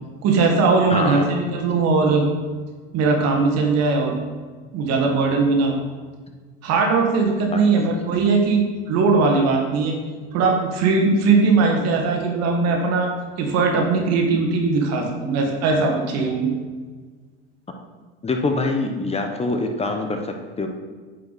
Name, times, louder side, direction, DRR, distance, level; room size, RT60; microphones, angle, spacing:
voice 1, 0.2-2.3 2.9-4.1 4.7-5.8 6.6-10.0 10.3-13.1 13.4-16.5, right 4 dB, 60° right, 1 dB, 1.9 m, -19 dB
voice 2, 0.9-1.3 7.5-7.9 18.2-20.2 20.6-20.7, left 2 dB, 20° left, 4 dB, 1.0 m, -24 dB
9.0 x 5.4 x 4.2 m, 1.4 s
supercardioid pair, 90°, 30 cm